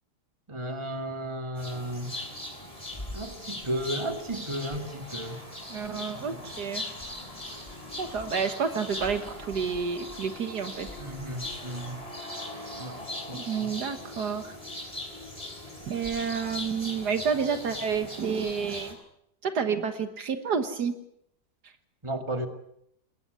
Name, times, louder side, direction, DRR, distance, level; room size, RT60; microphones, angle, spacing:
voice 1, 0.5-2.1 3.1-5.4 5.9-6.0 6.3-6.4 11.0-12.0 12.8-13.0 13.3-13.7 22.0-22.5, right 1 dB, 15° right, 6 dB, 2.2 m, -34 dB
sound 1, 1.6-18.9, left 1 dB, 20° left, 4.2 m, -40 dB
voice 2, 5.7-6.8 8.0-10.9 13.3-14.6 15.9-19.0 19.4-20.9, right 6 dB, 65° right, 9 dB, 1.9 m, -30 dB
20.5 x 19.0 x 9.4 m, 0.75 s
omnidirectional pair, 1.9 m